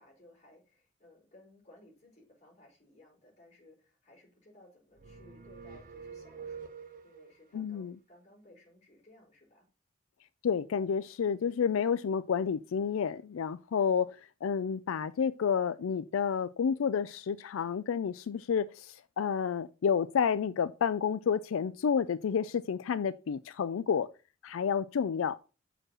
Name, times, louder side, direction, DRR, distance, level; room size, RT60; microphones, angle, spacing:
voice 1, 0.0-9.7, left 1 dB, 35° left, 4.4 m, -60 dB
sound 1, 4.9-7.4, right 5 dB, 45° right, 0.9 m, -46 dB
voice 2, 7.5-8.0 10.4-24.1 24.4-25.4, left 7 dB, 85° left, 0.4 m, -30 dB
6.4 x 4.9 x 6.1 m
head